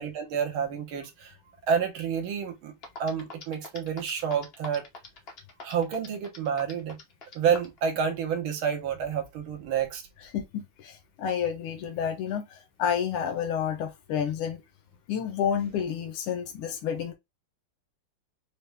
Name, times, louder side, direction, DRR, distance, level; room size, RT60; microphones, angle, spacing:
voice 1, 0.0-1.3 1.7-2.7 3.0-4.8 5.6-7.0 7.3-10.0, right 7 dB, 75° right, 1.6 m, -29 dB
sound 1, 2.5-2.6 2.8-7.8, left 3 dB, 55° left, 0.6 m, -42 dB
voice 2, 10.3-14.6 15.1-17.1, left 8 dB, 90° left, 1.7 m, -30 dB
5.1 x 2.2 x 3.3 m
omnidirectional pair, 2.4 m